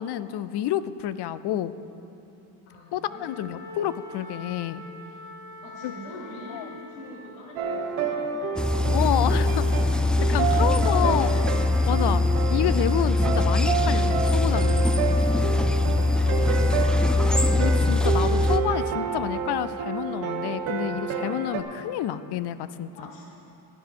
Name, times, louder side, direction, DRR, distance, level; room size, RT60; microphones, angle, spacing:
voice 1, 0.0-1.8 2.9-4.8 5.8-5.9 6.5-6.6 8.9-10.0 10.3-11.4 11.9-12.2 12.5-14.9 17.6-22.9, left 11 dB, 55° left, 14 dB, 0.6 m, -29 dB
voice 2, 2.7-3.6 5.6-9.2 10.2-11.4 15.7-17.4 20.4-20.6 22.9-23.5, equal, 80° left, -3 dB, 2.0 m, -43 dB
Wind instrument woodwind instrument, 3.1-7.4, left 3 dB, 40° left, 2.4 m, -43 dB
sound 1, 7.6-21.6, right 6 dB, 85° right, 1.2 m, -29 dB
sound 2, 8.6-18.6, left 2 dB, ahead, 0.4 m, -22 dB
16.0 x 10.5 x 3.8 m, 2.8 s
supercardioid pair, 85°, 47 cm